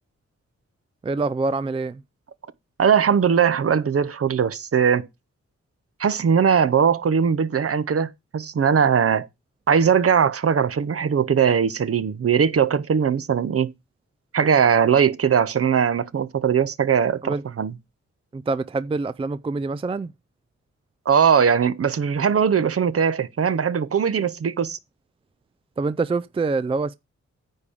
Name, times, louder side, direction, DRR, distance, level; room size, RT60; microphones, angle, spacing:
voice 1, 1.0-2.0 17.2-17.4 18.3-20.1 25.8-26.9, right 3 dB, 20° right, 0.4 m, -25 dB
voice 2, 2.8-5.1 6.0-9.3 9.7-13.7 14.3-17.7 21.1-24.8, right 7 dB, 50° right, 0.7 m, -20 dB
9.6 x 3.5 x 7.0 m
cardioid pair, 70°, 29 cm